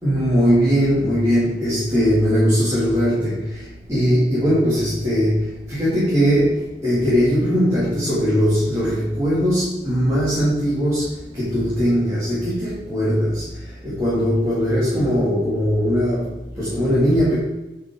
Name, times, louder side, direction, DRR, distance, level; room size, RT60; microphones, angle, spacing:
voice 1, 0.0-3.4 3.9-5.4 5.7-11.0 11.3-13.4 13.8-17.4, equal, 15° right, -10 dB, 2.7 m, -19 dB
9.6 x 5.9 x 3.9 m, 1.0 s
head